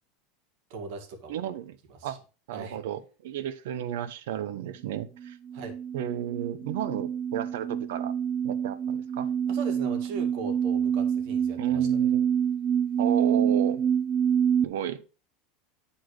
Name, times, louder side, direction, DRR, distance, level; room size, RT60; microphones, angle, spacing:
voice 1, 0.7-1.4 1.9-2.2 2.5-2.8 5.5-5.8 9.5-12.1, right 3 dB, 60° right, 4 dB, 1.9 m, -39 dB
voice 2, 1.3-1.8 2.0-2.2 2.5-5.4 5.9-8.1 8.4-9.3 11.6-12.3 13.0-13.8 14.6-15.0, right 11 dB, 80° right, 13 dB, 0.9 m, -33 dB
sound 1, 5.2-14.6, right 8 dB, 20° right, 0.5 m, -27 dB
9.8 x 4.2 x 4.8 m, 0.34 s
supercardioid pair, 165°, 0 cm